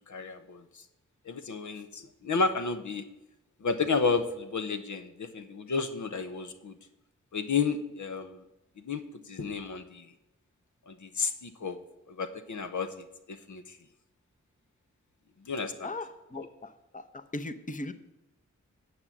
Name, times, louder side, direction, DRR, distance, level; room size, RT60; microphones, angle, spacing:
voice 1, 0.1-0.8 1.2-3.1 3.6-6.7 7.3-8.4 8.8-10.1 10.9-11.8 12.1-12.9 13.3-13.8 15.5-15.9 16.3-16.5, left 4 dB, 70° left, 8 dB, 0.9 m, -32 dB
voice 2, 15.8-17.9, left 2 dB, 25° left, 10 dB, 0.9 m, -39 dB
9.6 x 6.1 x 7.3 m, 0.97 s
cardioid pair, 40°, 31 cm